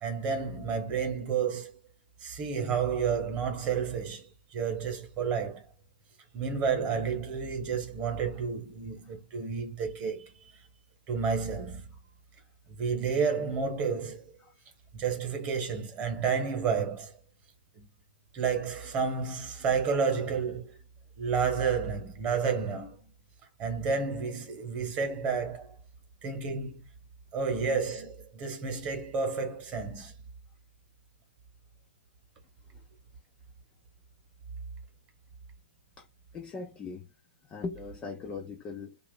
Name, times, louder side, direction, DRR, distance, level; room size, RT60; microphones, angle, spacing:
voice 1, 0.0-1.8 2.2-5.6 6.3-10.3 11.1-12.0 12.8-14.3 14.9-17.1 17.7-17.9 18.3-20.7 21.2-23.1 23.6-25.8 26.2-26.8 27.3-30.1, right 6 dB, 20° right, 1.1 m, -31 dB
voice 2, 36.3-37.1 37.4-39.0, left 4 dB, 15° left, 0.4 m, -39 dB
2.9 x 2.4 x 3.8 m
hypercardioid pair, 135°, 6 cm